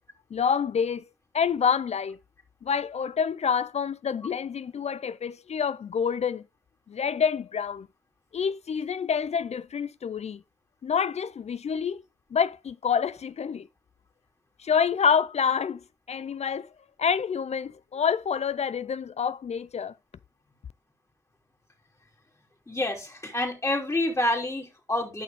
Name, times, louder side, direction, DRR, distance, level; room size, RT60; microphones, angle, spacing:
voice 1, 0.3-1.0 1.3-2.2 2.6-6.4 6.9-7.9 8.3-10.4 10.8-12.0 12.3-13.7 14.6-15.8 16.1-16.7 17.0-19.9, left 6 dB, 55° left, 0.4 m, -27 dB
voice 2, 22.7-25.2, left 1 dB, 20° left, 2.9 m, -28 dB
10.0 x 5.9 x 3.5 m
cardioid pair, 60°, 14 cm